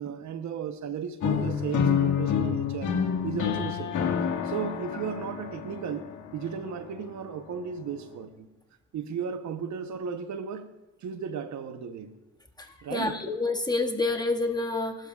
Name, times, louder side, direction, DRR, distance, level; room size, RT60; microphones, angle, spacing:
voice 1, 0.0-3.0 3.2-4.0 4.4-8.5 8.9-10.7 11.0-12.1 12.8-13.2, right 7 dB, 70° right, 0.9 m, -35 dB
sound 1, 1.2-7.2, left 7 dB, 80° left, 2.0 m, -28 dB
voice 2, 12.6-15.1, left 3 dB, 15° left, 1.8 m, -28 dB
23.0 x 12.5 x 2.4 m
cardioid pair, 90°, 30 cm